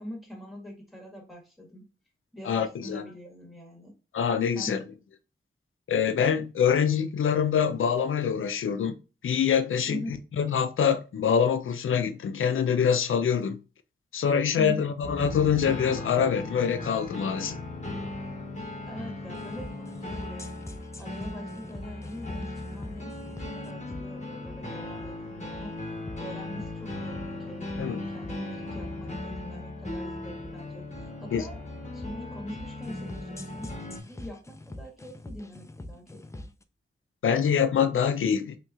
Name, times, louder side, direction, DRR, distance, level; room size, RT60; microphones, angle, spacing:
voice 1, 0.0-1.8 2.3-3.9 4.5-4.8 9.9-10.2 14.5-14.9 18.8-20.5 21.0-25.8 26.2-31.6 31.9-36.5, equal, ahead, 1.5 m, -43 dB
voice 2, 2.5-3.0 4.1-4.8 5.9-9.0 9.2-13.6 14.1-17.6 27.8-28.0 31.3-31.4 37.2-38.6, left 7 dB, 90° left, 0.4 m, -25 dB
sound 1, 15.0-34.0, left 2 dB, 35° left, 1.2 m, -38 dB
sound 2, 19.3-36.6, left 1 dB, 15° left, 0.4 m, -44 dB
3.1 x 3.0 x 2.4 m
wide cardioid pair, 80°, 20 cm